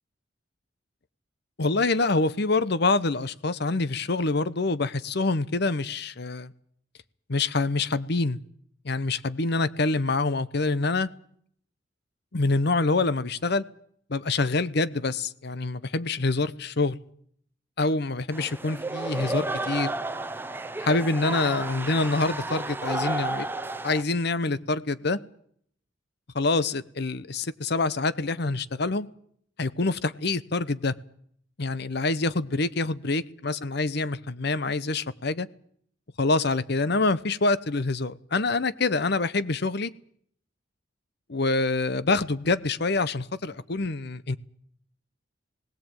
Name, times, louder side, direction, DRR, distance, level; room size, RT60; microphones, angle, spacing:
voice 1, 1.6-6.5 7.3-8.4 8.8-11.1 12.3-13.6 14.1-17.0 17.8-19.9 20.8-23.5 23.8-25.2 26.3-29.1 29.6-30.9 31.6-35.5 36.2-39.9 41.3-44.4, left 3 dB, 55° left, 0.9 m, -26 dB
sound 1, 18.3-24.0, right 2 dB, 10° right, 0.8 m, -32 dB
18.5 x 18.0 x 9.0 m
head